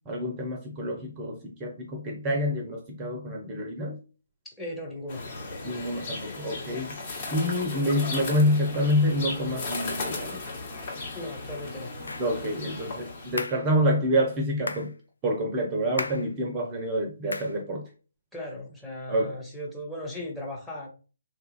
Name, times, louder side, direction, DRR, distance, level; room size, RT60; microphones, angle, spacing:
voice 1, 0.1-4.0 5.6-7.0 7.3-10.4 12.2-14.9 15.2-17.9 19.1-19.4, equal, 20° right, 0.6 m, -27 dB
voice 2, 4.4-5.2 11.1-11.9 18.3-20.9, left 1 dB, 5° left, 0.8 m, -37 dB
sound 1, 5.1-13.4, left 3 dB, 35° left, 1.0 m, -36 dB
sound 2, 12.1-12.3 13.4-13.7 14.7-14.9 16.0-16.3 17.3-17.6, left 2 dB, 75° left, 0.5 m, -34 dB
3.2 x 2.3 x 3.1 m
figure-of-eight pair, 140°, 0 cm